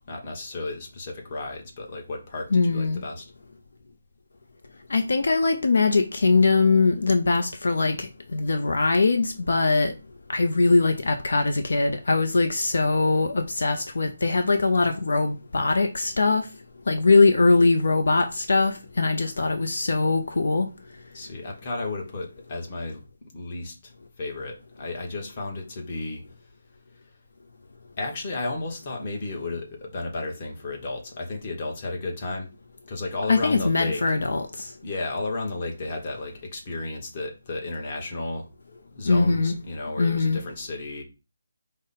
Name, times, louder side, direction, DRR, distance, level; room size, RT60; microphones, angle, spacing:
voice 1, 0.1-3.3 21.1-23.0 23.3-23.9 24.2-26.2 28.0-32.5 32.9-34.0 34.8-41.0, left 2 dB, 30° left, 1.1 m, -33 dB
voice 2, 2.5-3.0 4.9-9.9 10.3-16.5 16.9-20.7 33.3-34.7 39.0-39.5 40.0-40.4, left 3 dB, 70° left, 0.5 m, -21 dB
5.1 x 2.1 x 4.1 m
hypercardioid pair, 165°, 0 cm